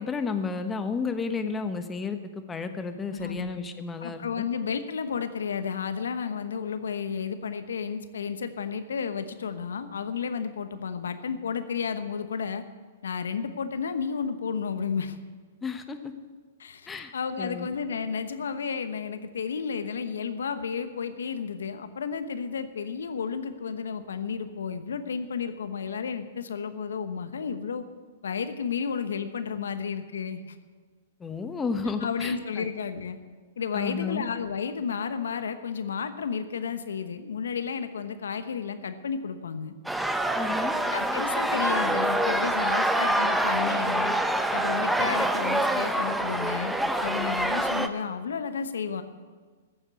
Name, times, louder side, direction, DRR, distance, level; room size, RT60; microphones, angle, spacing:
voice 1, 0.0-4.4 15.6-16.1 16.9-17.1 17.4-17.7 31.2-32.7 33.7-34.3 40.3-40.7, left 4 dB, 15° left, 8 dB, 1.1 m, -32 dB
voice 2, 3.1-3.6 4.0-12.6 13.0-15.2 16.6-27.8 28.2-30.4 32.0-33.2 33.6-39.7 40.9-44.2 44.5-46.7 47.0-49.0, left 6 dB, 80° left, 10 dB, 1.0 m, -32 dB
sound 1, 39.9-47.9, right 1 dB, 5° right, 0.8 m, -26 dB
14.5 x 7.3 x 8.3 m, 1.5 s
hypercardioid pair, 120°, 0 cm